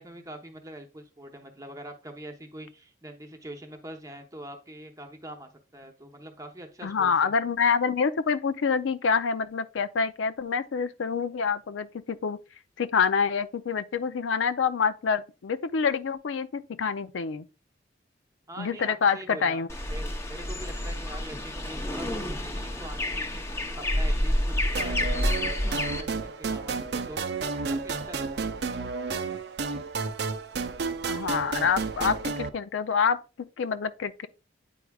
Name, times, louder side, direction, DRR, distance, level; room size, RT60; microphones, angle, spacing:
voice 1, 0.0-7.3 18.5-27.2 27.7-28.4, right 1 dB, 20° right, 0.8 m, -44 dB
voice 2, 6.8-12.4 12.8-17.4 18.6-19.7 31.1-33.2 33.6-34.3, left 6 dB, 85° left, 0.4 m, -26 dB
sound 1, 19.7-26.0, left 1 dB, 15° left, 0.7 m, -29 dB
sound 2, 24.7-32.5, right 4 dB, 60° right, 0.5 m, -31 dB
9.1 x 4.7 x 2.3 m
head